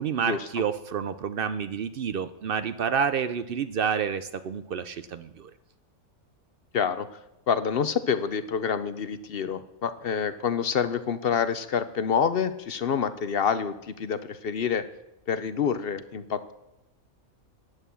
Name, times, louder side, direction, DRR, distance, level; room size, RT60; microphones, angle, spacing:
voice 1, 0.0-5.5, right 7 dB, 60° right, 12 dB, 0.6 m, -29 dB
voice 2, 6.7-7.1 7.5-14.8 15.3-16.5, left 7 dB, 55° left, 12 dB, 0.7 m, -27 dB
11.0 x 8.3 x 7.1 m, 0.93 s
omnidirectional pair, 1.5 m